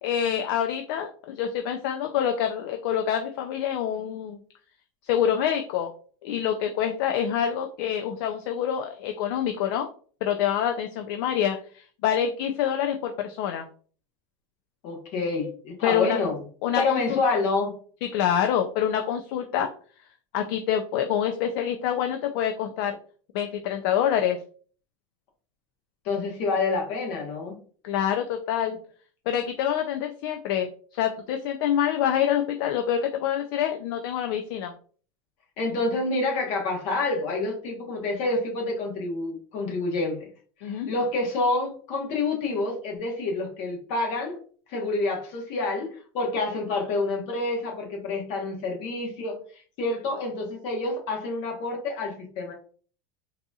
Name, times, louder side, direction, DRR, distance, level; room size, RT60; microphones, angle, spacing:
voice 1, 0.0-4.4 5.0-5.9 6.2-9.9 10.2-13.7 15.8-16.2 16.6-17.2 18.0-19.7 20.3-23.0 23.3-24.4 27.8-28.8 29.3-34.7 40.6-40.9, left 9 dB, 70° left, 5 dB, 0.4 m, -26 dB
voice 2, 14.8-16.4 16.8-17.7 26.0-27.6 35.6-40.3 40.6-44.4 44.7-49.4 49.8-52.5, left 3 dB, 55° left, 0 dB, 1.2 m, -28 dB
4.0 x 2.7 x 2.3 m, 0.43 s
supercardioid pair, 150°, 12 cm